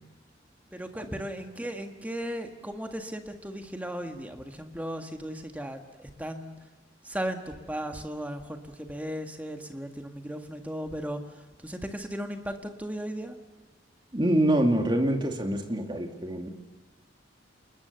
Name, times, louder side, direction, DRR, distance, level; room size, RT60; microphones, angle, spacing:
voice 1, 0.7-6.5 7.0-11.3 11.6-13.3, equal, 10° right, 5 dB, 1.7 m, -36 dB
voice 2, 14.1-16.5, right 1 dB, 25° right, 3 dB, 2.5 m, -25 dB
29.5 x 20.5 x 6.9 m, 1.3 s
head